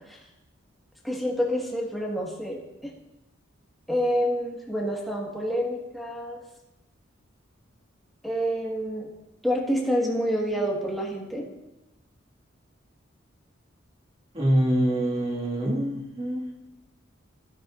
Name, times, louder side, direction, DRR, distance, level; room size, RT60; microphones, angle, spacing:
voice 1, 1.0-2.9 3.9-6.4 8.2-9.1 9.4-11.4, equal, ahead, -3 dB, 1.6 m, -28 dB
voice 2, 14.3-16.5, right 1 dB, 30° right, -2 dB, 1.8 m, -25 dB
13.5 x 8.9 x 2.5 m, 0.95 s
head